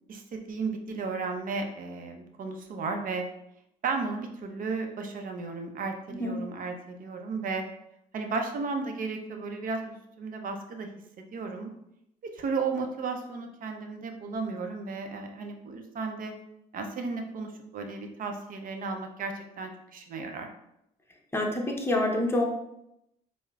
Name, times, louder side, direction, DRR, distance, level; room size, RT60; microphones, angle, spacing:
voice 1, 0.1-3.2 3.8-7.6 8.1-10.9 11.3-11.7 12.3-16.3 16.7-20.5, right 4 dB, 55° right, 4 dB, 0.6 m, -34 dB
voice 2, 6.1-6.4 21.3-22.4, left 1 dB, 15° left, 1 dB, 0.7 m, -27 dB
4.6 x 2.0 x 2.3 m, 0.81 s
supercardioid pair, 65°, 17 cm